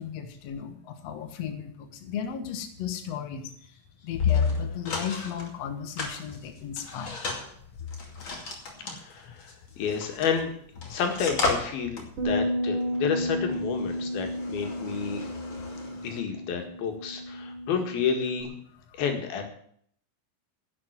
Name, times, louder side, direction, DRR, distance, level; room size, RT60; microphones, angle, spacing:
voice 1, 0.0-3.5 4.0-7.2, left 8 dB, 55° left, 6 dB, 2.2 m, -35 dB
sound 1, 4.1-5.5 6.0-10.4 10.7-16.2, left 5 dB, 35° left, 2.8 m, -32 dB
voice 2, 8.9-9.5 9.8-10.5 10.9-15.2 16.0-18.5 19.0-19.4, left 6 dB, 85° left, 4 dB, 3.8 m, -30 dB
Bass guitar, 12.2-18.4, equal, 65° right, 3.6 m, -32 dB
11.0 x 7.9 x 9.4 m, 0.63 s
omnidirectional pair, 4.2 m